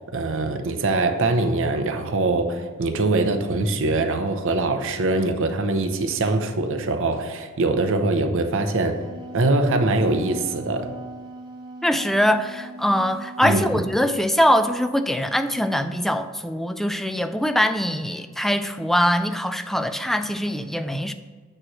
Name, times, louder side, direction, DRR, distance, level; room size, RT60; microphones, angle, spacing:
voice 1, 0.1-9.0 9.3-10.9 13.4-13.8, right 2 dB, 65° right, 6 dB, 0.7 m, -23 dB
Wind instrument woodwind instrument, 8.7-13.9, right 2 dB, 20° right, 1.2 m, -40 dB
voice 2, 11.8-21.1, equal, ahead, 9 dB, 0.3 m, -22 dB
8.8 x 3.1 x 6.2 m, 1.4 s
head